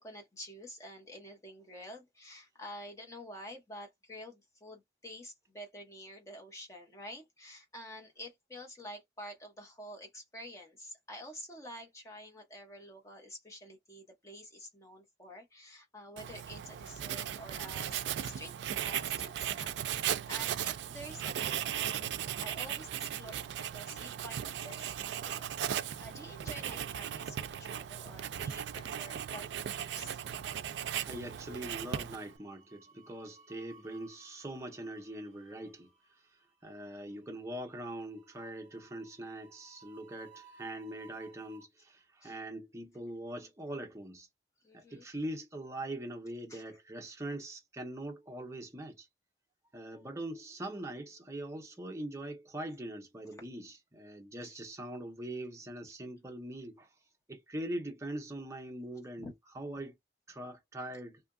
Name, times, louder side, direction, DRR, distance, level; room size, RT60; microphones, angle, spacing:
voice 1, 0.0-19.7 20.0-22.1 22.4-23.4 23.7-30.2 42.2-42.4 44.6-45.1 46.5-46.6 54.4-54.6 59.2-59.3, equal, 15° left, 1.0 m, -49 dB
Writing, 16.2-32.4, right 10 dB, 85° right, 0.3 m, -37 dB
voice 2, 31.0-36.1 36.6-44.3 44.7-49.1 49.7-56.9 57.3-59.3 59.6-60.0 60.3-61.2, right 1 dB, 15° right, 0.7 m, -42 dB
sound 1, 32.1-41.6, right 5 dB, 45° right, 1.0 m, -61 dB
2.8 x 2.5 x 2.3 m
head